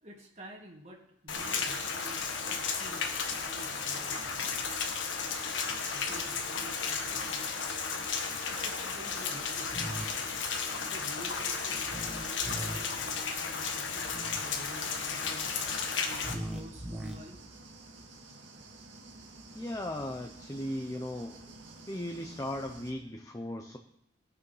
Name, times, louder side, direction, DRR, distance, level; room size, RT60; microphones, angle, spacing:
voice 1, 0.0-4.8 5.6-7.6 8.5-10.4 10.9-15.5 16.0-17.4, right 1 dB, 35° right, 1 dB, 1.7 m, -50 dB
Rain, 1.3-16.3, left 5 dB, 80° left, 1.5 m, -34 dB
sound 1, 9.7-10.1 11.8-12.8 14.0-14.4 16.2-17.1, equal, 5° right, 1.3 m, -39 dB
sound 2, 14.7-22.9, right 2 dB, 80° right, 1.9 m, -51 dB
voice 2, 19.5-21.4 21.9-23.8, left 1 dB, 15° left, 4 dB, 0.7 m, -37 dB
18.5 x 6.9 x 5.5 m, 0.77 s
head